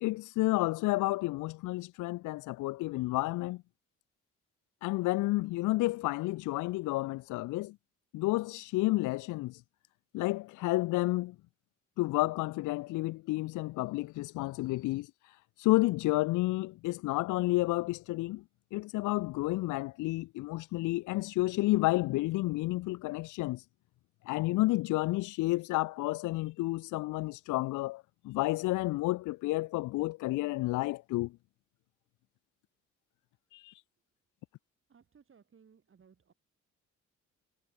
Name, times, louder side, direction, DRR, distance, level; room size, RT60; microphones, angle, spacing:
voice 1, 0.0-3.6 4.8-7.8 8.1-9.6 10.1-11.4 12.0-18.4 18.7-23.6 24.3-31.3 33.5-33.7, left 19 dB, 85° left, 0.5 m, -31 dB
voice 2, 34.9-36.3, right 6 dB, 45° right, 6.1 m, -61 dB
cardioid pair, 90°, 30 cm